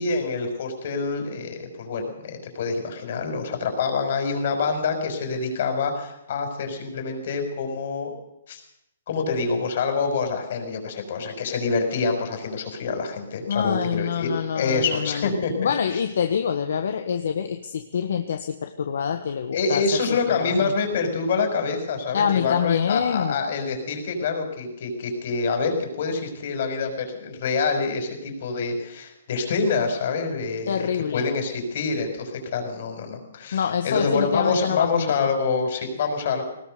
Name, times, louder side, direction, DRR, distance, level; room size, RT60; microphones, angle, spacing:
voice 1, 0.0-8.1 8.5-8.6 9.1-14.3 14.5-16.0 19.5-36.4, left 4 dB, 40° left, 5 dB, 5.7 m, -26 dB
voice 2, 13.5-15.3 15.6-20.7 22.1-23.3 30.7-31.2 33.5-35.3, left 7 dB, 60° left, 7 dB, 1.5 m, -26 dB
21.0 x 19.5 x 6.9 m, 0.84 s
hypercardioid pair, 175°, 0 cm